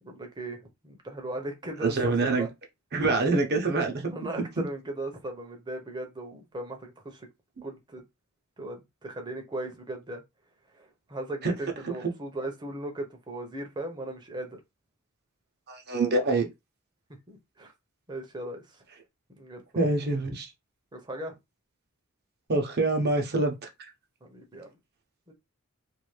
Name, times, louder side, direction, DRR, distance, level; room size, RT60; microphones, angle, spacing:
voice 1, 0.0-0.6 0.8-2.5 3.9-7.3 7.6-8.0 8.6-10.2 10.7-14.6 17.3-17.7 18.1-18.8 19.4-19.8 20.9-21.3 24.2-24.7 25.3-25.4, right 1 dB, 20° right, 0.8 m, -37 dB
voice 2, 1.8-2.5 2.9-4.1 11.4-11.5 15.7-16.5 19.7-20.5 22.5-23.5, right 3 dB, 50° right, 0.9 m, -25 dB
2.7 x 2.6 x 3.2 m
head